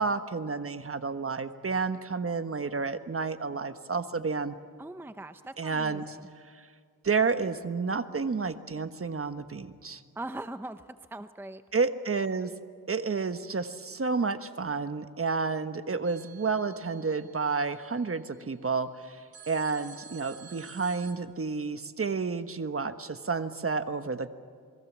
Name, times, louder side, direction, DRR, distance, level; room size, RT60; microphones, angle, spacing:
voice 1, 0.0-4.6 5.6-6.2 6.5-6.7 7.0-10.0 11.7-12.5 12.9-24.3, right 4 dB, 40° right, 10 dB, 1.3 m, -30 dB
voice 2, 4.8-6.2 10.2-10.8 11.1-11.6, right 2 dB, 5° right, 10 dB, 0.7 m, -40 dB
sound 1, 16.0-18.3 19.3-21.1, right 6 dB, 75° right, 2.1 m, -51 dB
28.0 x 21.5 x 7.4 m, 2.1 s
cardioid pair, 85°, 36 cm